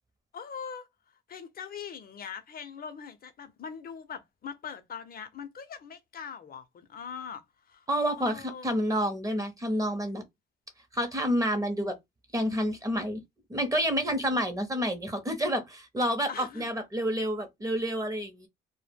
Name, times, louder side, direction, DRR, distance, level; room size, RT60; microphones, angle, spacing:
voice 1, 0.3-0.9 1.3-7.9 8.2-8.8 16.3-16.7, left 7 dB, 50° left, 0.6 m, -42 dB
voice 2, 7.9-10.2 10.9-11.9 12.3-13.2 13.5-18.5, equal, 15° right, 0.7 m, -29 dB
2.1 x 2.1 x 3.4 m
cardioid pair, 90°, 20 cm